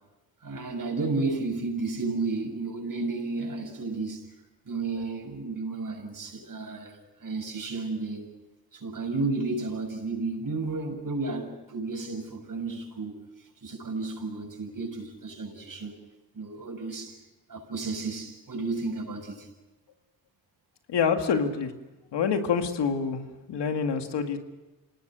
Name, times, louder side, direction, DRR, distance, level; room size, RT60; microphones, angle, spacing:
voice 1, 0.4-4.3 4.7-8.3 8.7-13.2 13.6-15.9 16.3-17.2 17.5-19.5, right 3 dB, 50° right, 7.3 m, -32 dB
voice 2, 20.9-21.7 22.1-23.2 23.5-24.4, left 6 dB, 85° left, 2.2 m, -26 dB
28.0 x 18.5 x 6.4 m
cardioid pair, 60°, 40 cm